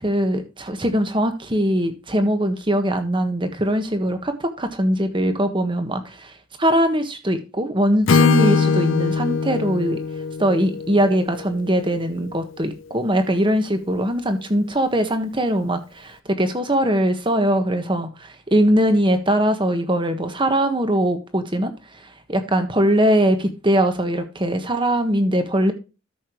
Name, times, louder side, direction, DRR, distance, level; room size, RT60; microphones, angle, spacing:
voice 1, 0.0-10.0 10.4-25.7, equal, 25° right, 1.4 m, -21 dB
Acoustic guitar / Strum, 8.1-12.0, left 5 dB, 65° left, 0.5 m, -21 dB
13.0 x 6.7 x 3.1 m
head